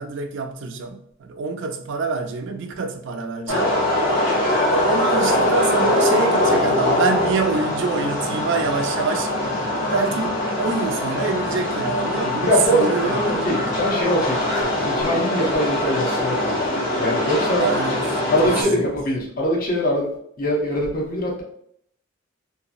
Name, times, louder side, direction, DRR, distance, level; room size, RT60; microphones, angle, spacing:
voice 1, 0.0-3.8 4.7-9.3 9.7-13.9 17.6-18.9, right 4 dB, 65° right, 0.4 m, -26 dB
sound 1, 3.5-18.6, left 1 dB, 70° left, 1.0 m, -22 dB
voice 2, 12.4-16.7 17.0-17.7 18.3-20.1 20.4-21.4, equal, 45° left, 0.7 m, -23 dB
2.8 x 2.2 x 2.5 m
head